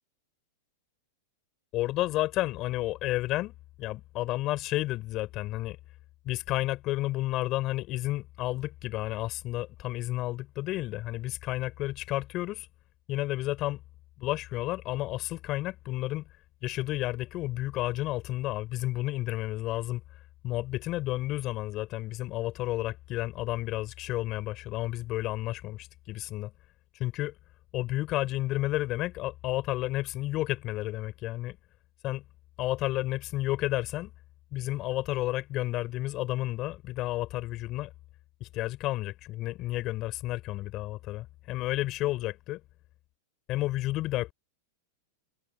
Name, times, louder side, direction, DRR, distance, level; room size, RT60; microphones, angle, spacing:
voice 1, 1.7-3.5 3.8-5.8 6.2-12.7 13.1-13.8 14.2-16.2 16.6-20.0 20.4-26.5 27.0-27.3 27.7-31.6 32.0-32.2 32.6-34.1 34.5-37.9 38.4-42.6 43.5-44.3, left 17 dB, 35° left, 4.8 m, -31 dB
supercardioid pair, 155°, 0 cm